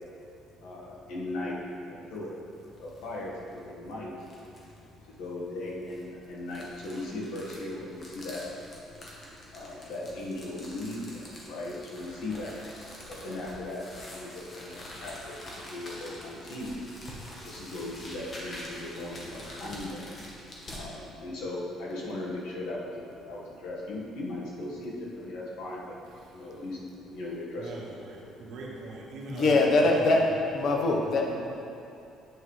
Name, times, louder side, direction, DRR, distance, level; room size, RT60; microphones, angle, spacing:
voice 1, 0.6-2.3 2.8-4.1 5.1-8.4 9.5-12.5 13.1-16.8 17.4-20.1 20.7-26.0 26.3-27.9, left 2 dB, 85° left, -5 dB, 1.6 m, -38 dB
sound 1, 2.5-3.1 3.5-3.6 4.2-4.8 5.6-20.8, left 1 dB, 30° left, 1.2 m, -46 dB
voice 2, 26.2-26.5 27.6-30.2, right 2 dB, 70° right, -4 dB, 1.4 m, -41 dB
voice 3, 29.3-30.2 30.5-31.4, left 2 dB, 50° left, 1 dB, 0.9 m, -23 dB
8.9 x 5.4 x 3.2 m, 2.6 s
cardioid pair, 145°, 0 cm